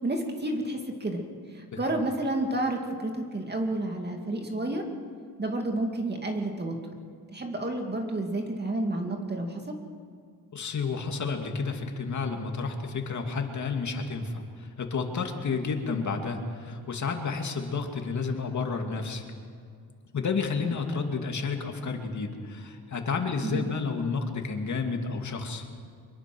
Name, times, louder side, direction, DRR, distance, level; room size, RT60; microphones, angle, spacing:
voice 1, 0.0-1.2 1.5-4.8 5.4-6.8 7.3-9.8 23.4-23.7, right 1 dB, 25° right, 3 dB, 2.3 m, -30 dB
voice 2, 10.5-19.2 20.1-25.6, left 4 dB, 45° left, 3 dB, 2.7 m, -31 dB
24.5 x 22.5 x 6.3 m, 2.2 s
cardioid pair, 125°, 38 cm